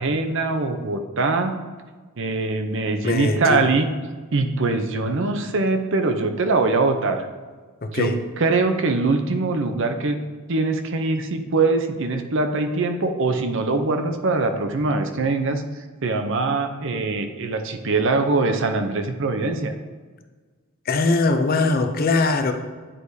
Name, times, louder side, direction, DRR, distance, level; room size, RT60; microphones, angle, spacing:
voice 1, 0.0-1.5 2.2-3.9 4.3-7.3 7.9-10.2 10.5-15.6 16.0-19.7, right 3 dB, 60° right, 6 dB, 0.6 m, -22 dB
voice 2, 3.0-3.7 7.8-8.2 20.9-22.5, left 3 dB, 45° left, 7 dB, 0.5 m, -21 dB
10.0 x 4.7 x 2.7 m, 1.4 s
head